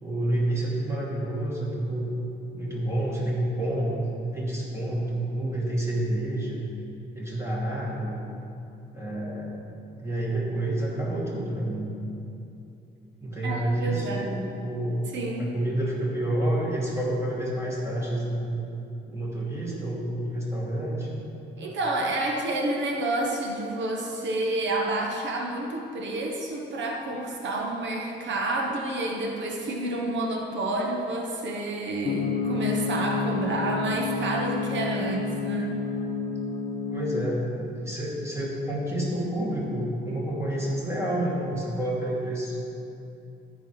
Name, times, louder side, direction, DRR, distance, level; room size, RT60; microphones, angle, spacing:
voice 1, 0.0-2.1 2.5-4.0 4.3-6.7 7.1-8.2 8.9-9.7 10.0-12.1 13.2-15.0 15.4-18.6 19.1-21.2 36.9-42.6, right 1 dB, 15° right, -5 dB, 2.5 m, -29 dB
voice 2, 13.4-14.3 15.1-15.5 21.6-35.7, right 2 dB, 65° right, 0 dB, 1.3 m, -29 dB
sound 1, 32.0-37.2, left 5 dB, 35° left, 0.6 m, -29 dB
14.0 x 4.7 x 5.0 m, 2.8 s
cardioid pair, 90°, 20 cm